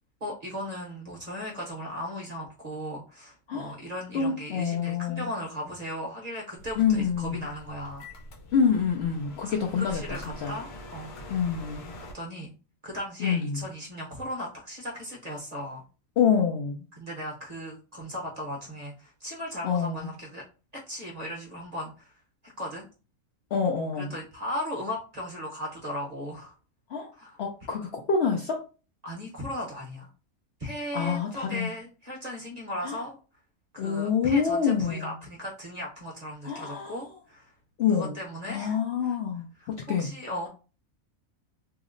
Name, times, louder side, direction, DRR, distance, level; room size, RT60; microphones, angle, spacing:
voice 1, 0.2-8.1 9.4-11.1 12.0-12.5 12.8-15.8 17.0-20.4 20.7-22.1 22.6-22.8 24.0-26.5 27.1-27.4 29.0-30.1 30.6-33.2 33.7-37.5 37.9-38.8 39.0-39.2 39.6-39.7 40.0-40.5, equal, 35° right, -2 dB, 0.8 m, -37 dB
voice 2, 4.1-5.3 6.8-7.5 8.5-10.0 10.4-10.5 11.3-11.9 13.2-13.6 16.2-16.8 19.6-20.1 23.5-24.2 26.9-27.1 27.4-28.6 30.9-31.7 32.8-33.0 33.8-35.1 36.4-37.0 37.8-38.2 38.5-40.1, left 6 dB, 65° left, 1 dB, 0.7 m, -27 dB
sound 1, 6.6-12.1, left 1 dB, 90° left, 1.1 m, -44 dB
2.8 x 2.0 x 3.7 m, 0.34 s
omnidirectional pair, 1.5 m